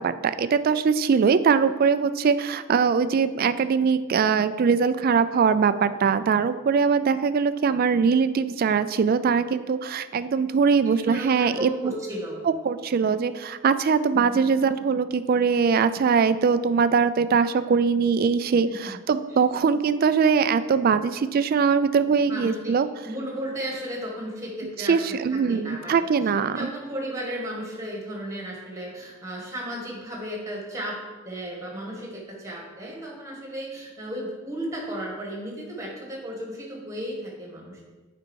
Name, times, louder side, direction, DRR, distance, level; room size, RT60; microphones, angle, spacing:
voice 1, 0.0-11.9 12.6-22.9 24.8-26.7, right 5 dB, 45° right, 12 dB, 0.3 m, -22 dB
voice 2, 10.8-12.4 14.1-14.4 18.7-19.0 19.2-19.4 22.3-22.8 23.0-37.8, equal, 15° right, -2 dB, 1.7 m, -35 dB
7.9 x 5.2 x 4.6 m, 1.3 s
head